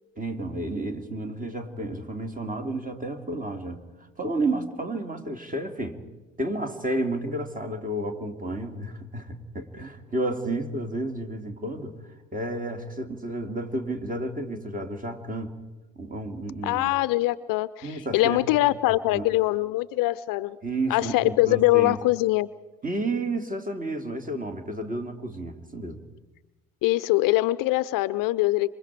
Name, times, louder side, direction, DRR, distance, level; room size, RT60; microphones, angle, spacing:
voice 1, 0.2-3.8 4.2-6.0 6.4-12.0 12.3-15.5 16.0-16.9 17.8-18.6 19.1-19.3 20.6-22.0 22.8-26.0, right 2 dB, 20° right, 6 dB, 2.8 m, -31 dB
voice 2, 16.6-20.6 20.9-22.5 26.8-28.8, left 18 dB, 55° left, 17 dB, 0.7 m, -23 dB
26.5 x 24.0 x 4.8 m, 1.1 s
hypercardioid pair, 55°, 40 cm